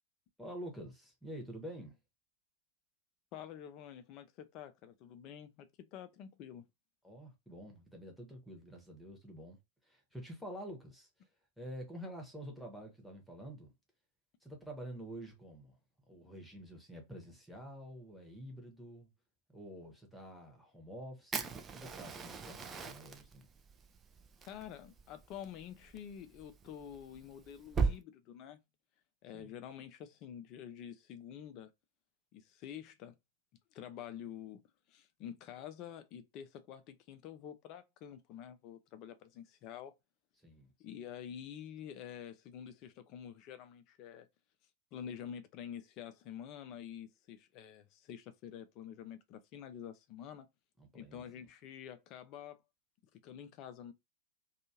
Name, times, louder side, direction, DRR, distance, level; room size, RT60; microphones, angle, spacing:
voice 1, 0.4-2.0 7.0-11.1 11.6-13.7 14.4-15.8 16.1-19.1 19.5-23.5 29.3-29.5 40.4-40.7 50.8-51.2, equal, 5° left, 1.0 m, -48 dB
voice 2, 3.3-6.7 24.5-28.6 29.2-31.7 32.3-33.1 33.7-34.6 34.9-39.9 40.8-44.3 44.9-50.5 50.9-52.6 53.1-53.9, left 9 dB, 40° left, 0.5 m, -48 dB
Fire, 21.3-28.0, right 5 dB, 20° right, 0.4 m, -39 dB
2.6 x 2.4 x 2.8 m
figure-of-eight pair, 90°, 0 cm